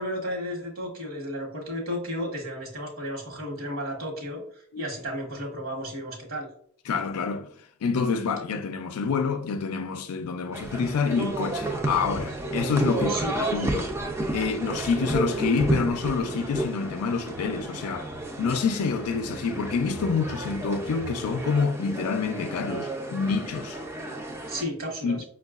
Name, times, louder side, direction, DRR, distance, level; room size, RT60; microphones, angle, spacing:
voice 1, 0.0-4.4 4.8-6.5 13.0-13.7 24.5-25.2, equal, 65° right, 1.1 m, -33 dB
voice 2, 6.9-7.5 7.8-13.9 14.3-18.1 18.4-23.8 25.0-25.2, left 5 dB, 85° left, 0.4 m, -27 dB
sound 1, 10.5-24.6, right 2 dB, 10° right, 0.4 m, -32 dB
5.2 x 2.3 x 2.3 m
head